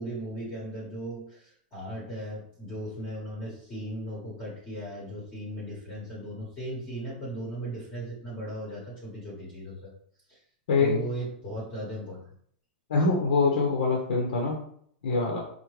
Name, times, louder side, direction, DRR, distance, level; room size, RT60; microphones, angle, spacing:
voice 1, 0.0-9.9 10.3-10.4 10.8-12.3, right 1 dB, 20° left, -6 dB, 0.9 m, -37 dB
voice 2, 10.7-11.0 12.9-14.6 15.0-15.4, left 3 dB, 75° left, -1 dB, 0.8 m, -24 dB
5.0 x 2.2 x 3.1 m, 0.64 s
supercardioid pair, 180°, 5 cm